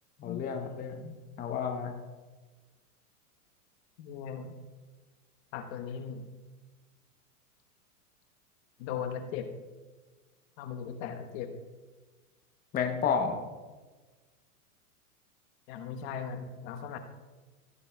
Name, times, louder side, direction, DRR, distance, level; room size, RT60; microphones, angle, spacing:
voice 1, 0.2-1.9 12.7-13.4, left 6 dB, 20° left, 3 dB, 0.8 m, -31 dB
voice 2, 4.0-4.6 5.5-6.2 8.8-9.5 10.6-11.5 15.7-17.0, left 7 dB, 45° left, 7 dB, 1.1 m, -38 dB
16.5 x 9.9 x 2.2 m, 1.3 s
hypercardioid pair, 125°, 46 cm